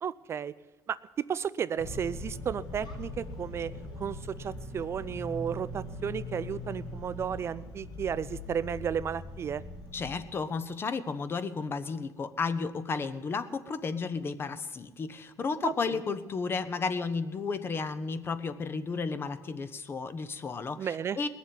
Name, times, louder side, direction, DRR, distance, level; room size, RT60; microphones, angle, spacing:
voice 1, 0.0-0.5 0.9-3.7 4.0-9.6 15.6-15.7 20.8-21.2, right 8 dB, 35° right, 16 dB, 0.4 m, -33 dB
sound 1, 1.8-10.1, left 1 dB, 75° left, 3.9 m, -41 dB
voice 2, 9.9-21.3, left 4 dB, 30° left, 12 dB, 1.0 m, -33 dB
19.5 x 7.3 x 9.2 m, 1.2 s
cardioid pair, 110°, 7 cm